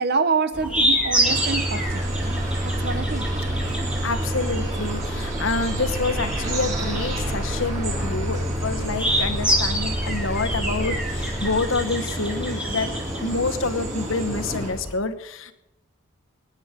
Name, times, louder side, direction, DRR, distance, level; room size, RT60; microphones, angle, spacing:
voice 1, 0.0-2.4 2.6-3.3, right 4 dB, 50° right, 12 dB, 0.9 m, -26 dB
sound 1, 0.5-14.9, equal, 5° right, 1.9 m, -29 dB
sound 2, 1.2-14.7, right 1 dB, 35° right, 4.1 m, -29 dB
sound 3, 1.8-11.7, equal, 75° right, 1.8 m, -33 dB
voice 2, 4.0-12.9 13.2-15.5, left 3 dB, 65° left, 9 dB, 1.1 m, -27 dB
21.5 x 9.8 x 5.1 m, 0.86 s
head